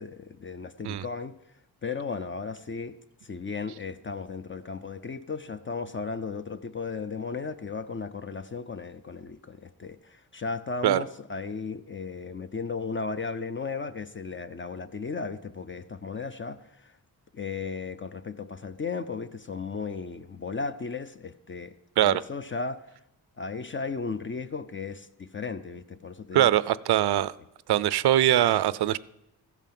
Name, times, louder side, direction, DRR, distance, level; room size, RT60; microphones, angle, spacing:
voice 1, 0.0-1.3 1.8-3.0 3.2-17.0 17.3-21.7 22.0-22.8 23.4-26.5, left 4 dB, 30° left, 0.5 m, -35 dB
voice 2, 26.3-27.3 27.7-29.0, right 12 dB, 75° right, 0.6 m, -22 dB
15.0 x 9.1 x 7.6 m
wide cardioid pair, 165°, 39 cm